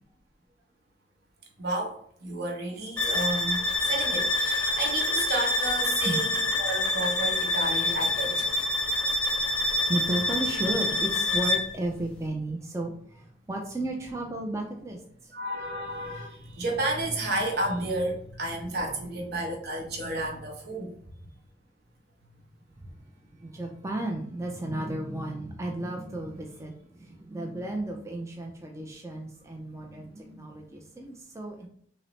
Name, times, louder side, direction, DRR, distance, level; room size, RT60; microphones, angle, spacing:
voice 1, 1.6-8.5 15.3-20.9, right 2 dB, 60° right, 1 dB, 0.9 m, -32 dB
sound 1, 3.0-11.8, left 2 dB, 5° left, 0.7 m, -27 dB
voice 2, 9.3-15.3 18.9-19.0 23.4-26.7 27.0-31.7, right 1 dB, 15° right, 1 dB, 0.4 m, -34 dB
5.4 x 2.0 x 3.1 m, 0.64 s
head